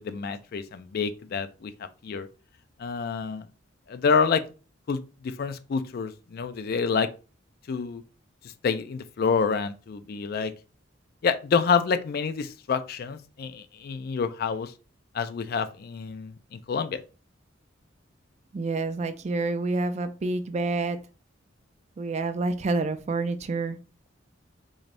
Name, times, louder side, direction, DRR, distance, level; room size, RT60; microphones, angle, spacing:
voice 1, 0.0-1.7 2.0-2.3 2.8-3.5 3.9-4.4 4.9-7.1 7.7-8.0 8.6-10.5 11.2-14.7 15.1-17.0, left 5 dB, 50° left, 0.3 m, -27 dB
voice 2, 18.5-21.0 22.0-23.8, right 3 dB, 35° right, 0.3 m, -28 dB
3.9 x 3.3 x 2.5 m
head